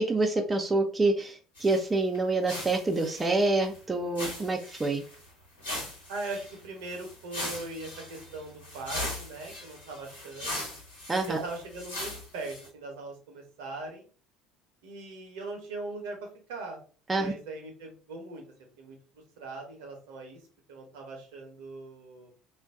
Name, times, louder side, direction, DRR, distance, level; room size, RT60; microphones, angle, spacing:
voice 1, 0.0-5.0 11.1-11.4 17.1-17.3, right 2 dB, 20° right, 3 dB, 0.5 m, -27 dB
sound 1, 1.6-1.9 2.1-2.2 2.5-3.8 4.1-5.3 5.6-12.7, left 1 dB, 80° left, 1.2 m, -39 dB
voice 2, 6.1-10.6 11.3-14.1 14.8-16.8 17.1-18.4 18.8-19.0 19.4-20.4 20.7-22.3, right 3 dB, 70° right, 2 dB, 0.9 m, -40 dB
2.6 x 2.2 x 3.4 m, 0.38 s
figure-of-eight pair, 60°, 0 cm